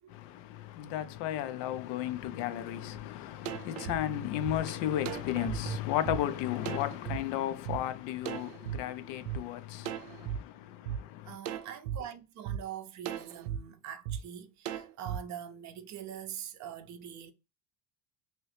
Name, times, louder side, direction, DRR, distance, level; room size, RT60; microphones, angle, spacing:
voice 1, 0.1-11.3, left 12 dB, 85° left, 0.6 m, -34 dB
sound 1, 3.0-3.1 3.5-7.2 7.7-7.8 8.3-9.4 9.8-10.4 10.9-11.0 11.5-12.0 12.5-12.6 13.1-13.6 14.1-14.2 14.7-15.2, right 11 dB, 85° right, 0.6 m, -37 dB
voice 2, 11.2-17.3, right 9 dB, 45° right, 0.5 m, -43 dB
3.0 x 2.8 x 3.2 m
cardioid pair, 135°, 41 cm